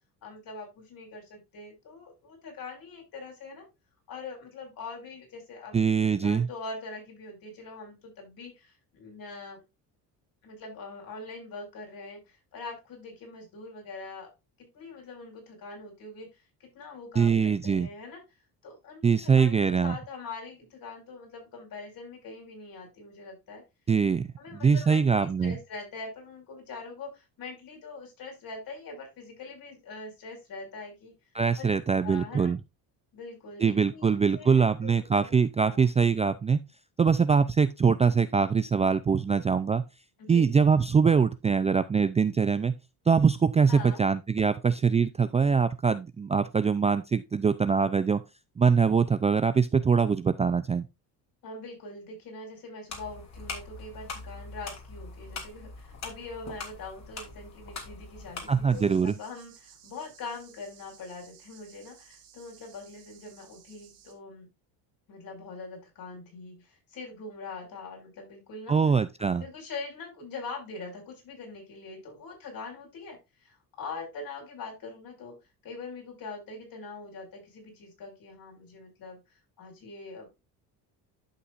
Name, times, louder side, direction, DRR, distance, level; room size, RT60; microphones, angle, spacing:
voice 1, 0.2-3.6 4.1-5.8 6.1-9.6 10.4-14.3 14.6-18.2 18.6-23.6 24.4-31.1 31.6-31.7 32.0-32.5 33.1-35.4 35.7-35.9 40.2-40.6 43.7-44.0 51.4-64.5 65.1-68.8 69.2-75.4 75.6-80.3, left 3 dB, 55° left, 5.4 m, -43 dB
voice 2, 5.7-6.5 17.2-17.9 19.0-20.0 23.9-24.3 24.6-25.5 31.3-32.6 33.6-36.6 37.0-39.8 40.3-42.8 43.1-48.2 48.6-50.9 58.5-59.1 68.7-69.5, right 5 dB, 15° right, 0.4 m, -23 dB
sound 1, 52.9-58.9, left 3 dB, 40° left, 2.9 m, -42 dB
sound 2, 58.7-64.1, right 9 dB, 60° right, 3.3 m, -56 dB
11.5 x 6.0 x 2.5 m
cardioid pair, 105°, 41 cm